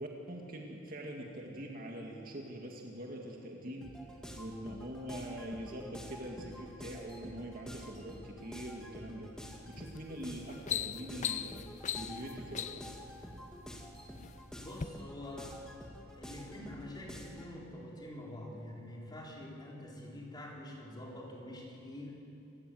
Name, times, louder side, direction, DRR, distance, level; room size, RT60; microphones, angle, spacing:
voice 1, 0.0-3.9 4.3-9.3 9.7-12.8, right 1 dB, 45° right, 0 dB, 2.2 m, -44 dB
sound 1, 3.8-17.5, equal, 5° left, 2.2 m, -49 dB
sound 2, 9.7-10.0 10.4-13.0 13.8-14.3 14.7-14.9, left 9 dB, 35° left, 0.5 m, -38 dB
voice 2, 14.6-15.6 16.1-22.2, left 1 dB, 20° left, -3 dB, 4.4 m, -46 dB
27.5 x 17.0 x 8.0 m, 2.9 s
head